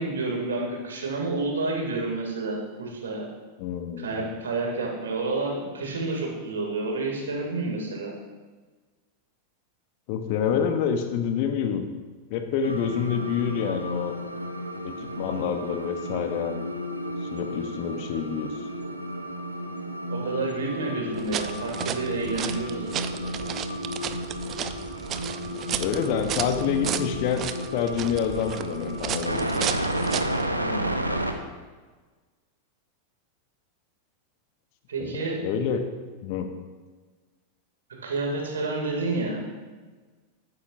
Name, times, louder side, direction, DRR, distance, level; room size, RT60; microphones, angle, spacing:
voice 1, 0.0-3.3 4.0-8.1 20.1-22.9 23.2-23.3 30.5-31.0 34.9-35.4 38.0-39.4, right 3 dB, 65° right, -1 dB, 2.5 m, -29 dB
voice 2, 3.6-4.3 10.1-11.9 12.3-14.1 14.8-16.6 17.3-18.6 25.8-29.5 35.0-35.8 36.2-36.5, left 8 dB, 45° left, 7 dB, 0.9 m, -27 dB
sound 1, 12.6-31.3, equal, 85° right, 0.8 m, -32 dB
sound 2, 21.1-30.4, right 10 dB, 30° right, 0.5 m, -34 dB
12.0 x 9.6 x 2.6 m, 1.4 s
figure-of-eight pair, 90°, 0 cm